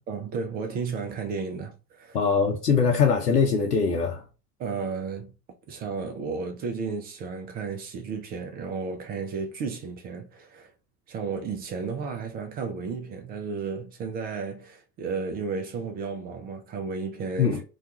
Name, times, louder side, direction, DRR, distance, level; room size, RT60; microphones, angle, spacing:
voice 1, 0.1-2.2 4.6-5.3 5.7-10.7 11.1-17.6, right 5 dB, 25° right, 0.3 m, -33 dB
voice 2, 2.1-4.2 17.4-17.6, left 6 dB, 90° left, 0.7 m, -22 dB
2.3 x 2.3 x 2.7 m
figure-of-eight pair, 80°, 46 cm